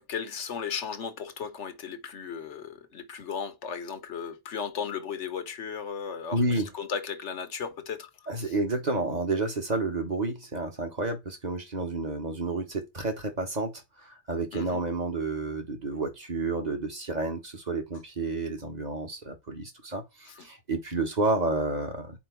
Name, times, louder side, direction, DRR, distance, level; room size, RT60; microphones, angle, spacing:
voice 1, 0.0-8.1 8.4-8.5 14.5-14.8 20.4-20.5, left 6 dB, 85° left, 1.3 m, -36 dB
voice 2, 6.3-6.7 8.3-13.7 14.0-22.2, right 2 dB, 40° right, 1.4 m, -30 dB
4.7 x 4.5 x 4.5 m
omnidirectional pair, 1.2 m